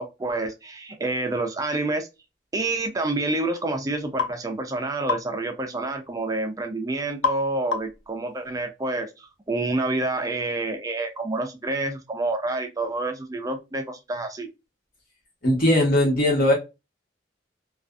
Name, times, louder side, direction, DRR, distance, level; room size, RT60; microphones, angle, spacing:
voice 1, 0.0-2.1 2.5-14.5, right 2 dB, 20° right, 0.3 m, -28 dB
sound 1, 4.2-4.4 5.1-5.3 7.2-7.5 7.7-8.0, left 6 dB, 85° left, 0.5 m, -26 dB
voice 2, 15.4-16.5, left 1 dB, 55° left, 1.2 m, -19 dB
2.5 x 2.3 x 2.2 m
head